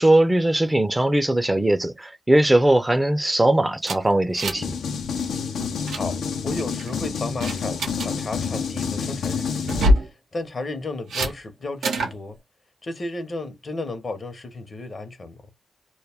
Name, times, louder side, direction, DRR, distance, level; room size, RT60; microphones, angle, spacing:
voice 1, 0.0-4.7, right 1 dB, 20° right, 0.5 m, -20 dB
sound 1, 3.8-4.8 5.0-5.2 5.6-6.0 6.6-6.9 7.4-8.1 9.6-10.1 11.1-11.3 11.8-12.2, equal, 90° right, 0.6 m, -24 dB
sound 2, 4.5-9.9, left 6 dB, 85° left, 0.5 m, -28 dB
voice 2, 5.9-12.4 12.8-15.4, left 2 dB, 55° left, 0.8 m, -33 dB
2.2 x 2.1 x 3.3 m
supercardioid pair, 45°, 0 cm